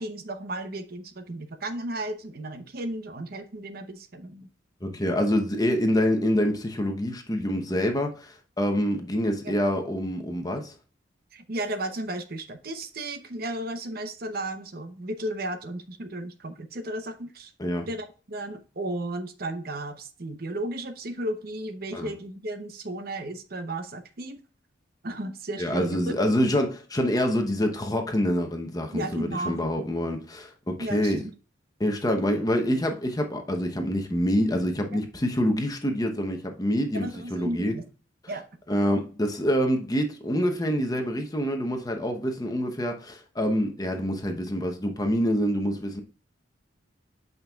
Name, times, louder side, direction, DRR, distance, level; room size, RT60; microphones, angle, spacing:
voice 1, 0.0-4.5 9.4-9.5 11.3-17.5 17.9-24.4 25.0-26.2 28.9-29.6 30.8-31.3 36.9-37.8 38.3-38.4, right 1 dB, 50° right, 0.8 m, -34 dB
voice 2, 4.8-10.7 17.6-17.9 21.9-22.1 25.6-31.2 31.8-37.8 38.7-46.0, equal, 20° left, 0.9 m, -26 dB
8.5 x 5.3 x 2.3 m
head